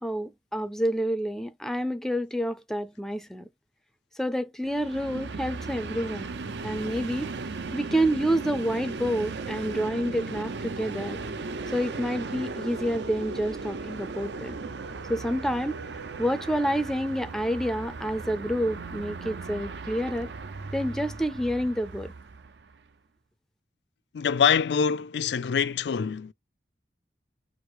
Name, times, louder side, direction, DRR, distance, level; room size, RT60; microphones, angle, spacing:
voice 1, 0.0-3.5 4.1-6.3 6.6-7.3 7.7-11.2 11.7-14.6 15.1-20.3 20.7-22.1, equal, 5° left, 0.4 m, -28 dB
Train, 4.6-22.8, right 3 dB, 75° right, 0.6 m, -37 dB
voice 2, 24.1-26.3, left 7 dB, 70° left, 0.4 m, -24 dB
4.7 x 2.0 x 4.7 m
head